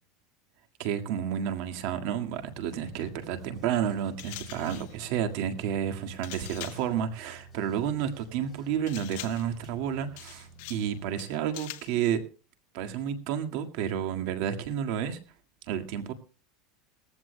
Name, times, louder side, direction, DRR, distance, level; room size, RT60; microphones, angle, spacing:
voice 1, 0.8-12.2 12.7-15.2 15.7-16.1, right 9 dB, 60° right, 7 dB, 1.8 m, -31 dB
sound 1, 2.3-11.3, right 3 dB, 15° left, 3.3 m, -51 dB
sound 2, 4.2-5.0 6.2-6.9 8.9-9.6 10.2-10.9 11.2-12.0, left 17 dB, 65° left, 1.4 m, -43 dB
21.0 x 15.0 x 2.2 m, 0.34 s
supercardioid pair, 155°, 0 cm